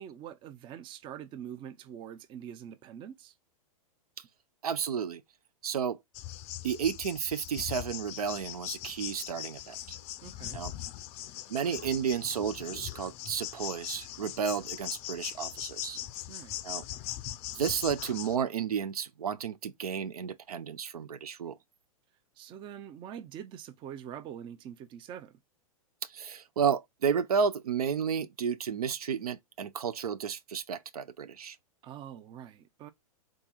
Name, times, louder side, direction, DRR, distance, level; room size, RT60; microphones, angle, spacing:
voice 1, 0.0-3.3 10.2-10.6 16.3-16.6 22.4-25.4 31.8-32.9, right 9 dB, 25° right, 0.4 m, -44 dB
voice 2, 4.6-5.2 5.6-6.0 6.6-10.0 10.5-10.7 11.5-16.0 16.6-16.8 17.5-21.6 26.1-31.6, right 7 dB, 85° right, 0.5 m, -32 dB
sound 1, 6.1-18.4, left 13 dB, 35° left, 0.4 m, -41 dB
3.7 x 2.7 x 2.3 m
hypercardioid pair, 110°, 19 cm